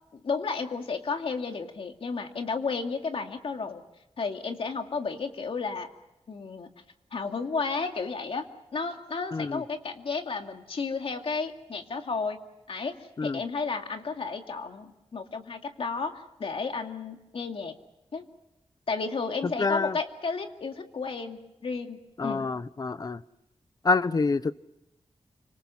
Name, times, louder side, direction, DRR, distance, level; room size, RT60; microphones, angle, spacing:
voice 1, 0.2-3.8 4.2-5.9 6.3-6.7 7.1-8.5 8.7-12.4 12.7-17.8 18.1-18.3 18.9-22.5, left 4 dB, 60° left, 4 dB, 2.4 m, -32 dB
voice 2, 9.3-9.6 13.2-13.4 19.4-20.0 22.2-23.2 23.8-24.5, left 4 dB, 40° left, 15 dB, 0.8 m, -27 dB
30.0 x 26.0 x 5.7 m, 0.93 s
wide cardioid pair, 135°, 10 cm